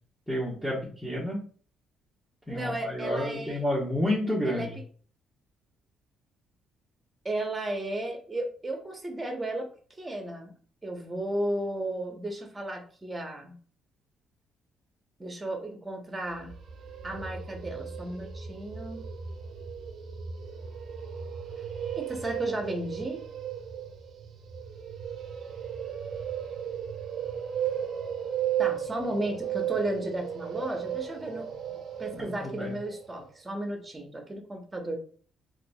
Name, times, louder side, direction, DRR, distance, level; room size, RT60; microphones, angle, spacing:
voice 1, 0.3-1.4 2.5-4.8 32.2-32.7, left 1 dB, 5° left, -8 dB, 1.3 m, -30 dB
voice 2, 2.5-3.6 4.4-4.7 7.2-9.7 10.0-10.5 10.8-13.6 15.2-16.5 17.0-19.0 21.9-23.2 28.6-31.6 32.0-35.0, right 1 dB, 20° right, 3 dB, 0.9 m, -34 dB
sound 1, 16.3-33.3, right 9 dB, 60° right, 0.5 m, -35 dB
3.8 x 2.6 x 2.3 m, 0.43 s
cardioid pair, 90°, 0 cm